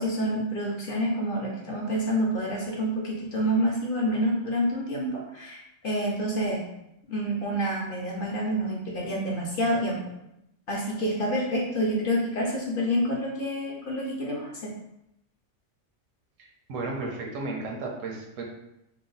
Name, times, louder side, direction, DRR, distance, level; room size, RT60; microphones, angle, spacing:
voice 1, 0.0-6.6 7.1-10.0 10.7-14.7, equal, 55° left, -2 dB, 0.7 m, -28 dB
voice 2, 16.4-18.4, right 3 dB, 90° right, 0 dB, 1.1 m, -34 dB
3.0 x 2.0 x 3.8 m, 0.83 s
omnidirectional pair, 1.3 m